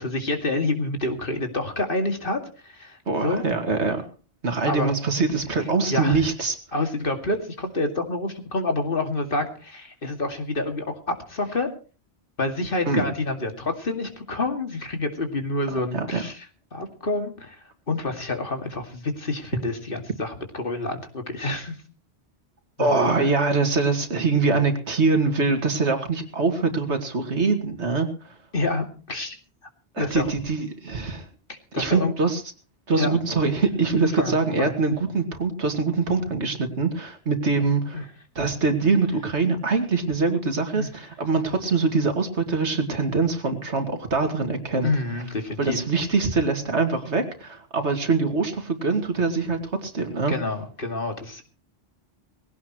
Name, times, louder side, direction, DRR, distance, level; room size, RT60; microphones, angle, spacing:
voice 1, 0.0-3.4 4.7-4.9 5.9-6.2 6.7-11.7 12.4-16.5 16.7-17.6 17.9-21.8 22.8-23.3 28.5-29.4 30.0-30.3 31.7-32.1 32.9-33.2 34.2-35.0 37.9-38.0 40.8-40.9 44.8-45.8 50.3-51.4, left 2 dB, 55° left, 5 dB, 2.5 m, -28 dB
voice 2, 3.1-4.0 4.4-6.6 12.9-13.1 15.9-16.2 22.8-28.3 29.9-31.2 31.8-32.4 32.9-38.0 38.4-44.9 45.6-50.3, right 4 dB, 90° right, 7 dB, 2.5 m, -23 dB
20.0 x 17.0 x 3.1 m, 0.36 s
omnidirectional pair, 1.1 m